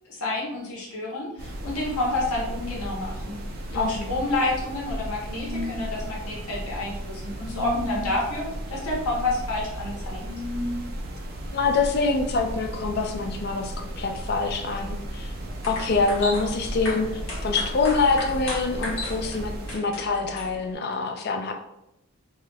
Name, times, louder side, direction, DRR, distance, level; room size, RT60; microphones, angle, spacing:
voice 1, 0.0-3.4 3.7-10.2, left 2 dB, 90° left, -3 dB, 0.9 m, -29 dB
sound 1, 1.4-19.8, right 1 dB, 45° right, 0.4 m, -35 dB
voice 2, 3.7-4.1 11.5-15.3 15.7-21.5, left 4 dB, 45° left, 4 dB, 0.4 m, -25 dB
sound 2, 5.3-5.9 7.4-8.1 10.2-10.8, left 2 dB, 10° right, 1.3 m, -32 dB
sound 3, 15.4-20.7, left 1 dB, 65° left, 1.0 m, -35 dB
2.9 x 2.3 x 3.2 m, 0.86 s
head